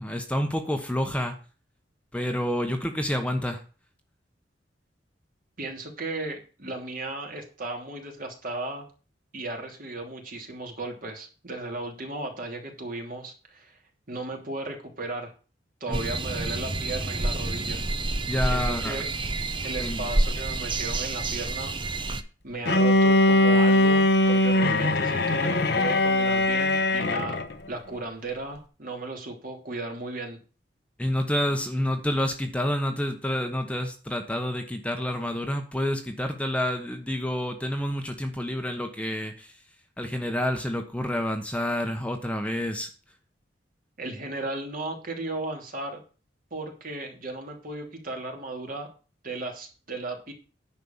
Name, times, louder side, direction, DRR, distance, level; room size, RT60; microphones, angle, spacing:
voice 1, 0.0-1.3 2.1-3.6 15.9-16.0 18.3-19.0 19.8-20.1 31.0-39.5 40.0-42.9, left 1 dB, 5° left, 5 dB, 1.1 m, -28 dB
voice 2, 5.6-8.9 9.3-13.8 14.1-15.3 15.8-17.8 18.4-19.1 19.6-21.9 22.4-27.4 27.7-30.4 44.0-46.0 46.5-48.9 49.2-50.3, right 2 dB, 50° right, 2 dB, 3.0 m, -35 dB
sound 1, 15.9-22.2, right 2 dB, 30° right, 0.8 m, -28 dB
Bowed string instrument, 22.7-27.5, left 1 dB, 65° left, 1.0 m, -21 dB
10.0 x 5.6 x 7.2 m, 0.36 s
head